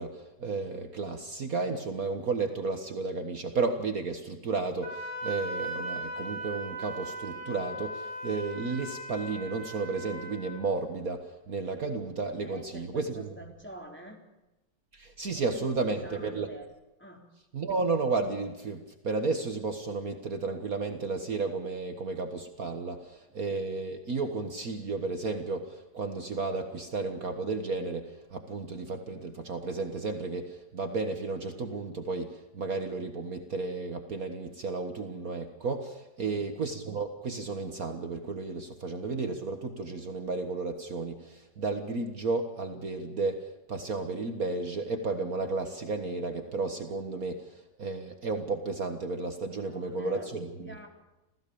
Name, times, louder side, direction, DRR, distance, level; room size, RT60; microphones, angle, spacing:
voice 1, 0.0-13.3 14.9-16.5 17.5-43.4 43.7-47.5 47.8-50.7, right 3 dB, 55° right, 6 dB, 1.9 m, -33 dB
Wind instrument woodwind instrument, 4.8-10.6, right 1 dB, 30° right, 6.9 m, -38 dB
voice 2, 12.4-14.2 15.3-16.7 17.0-17.3 36.2-36.5 49.6-50.9, right 1 dB, 5° left, 1 dB, 3.7 m, -47 dB
27.5 x 16.5 x 7.0 m, 1.0 s
omnidirectional pair, 1.9 m